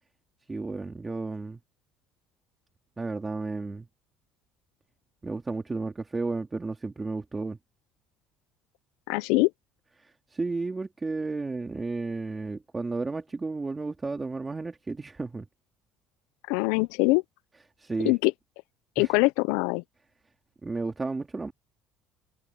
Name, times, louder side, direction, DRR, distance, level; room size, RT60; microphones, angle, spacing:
voice 1, 0.5-1.6 3.0-3.9 5.2-7.6 10.0-15.5 17.8-18.1 19.0-19.1 20.6-21.5, right 3 dB, 15° right, 3.4 m, -33 dB
voice 2, 9.1-9.5 16.5-17.2 18.0-18.3 19.0-19.8, left 24 dB, 85° left, 0.5 m, -23 dB
cardioid pair, 150°, 0 cm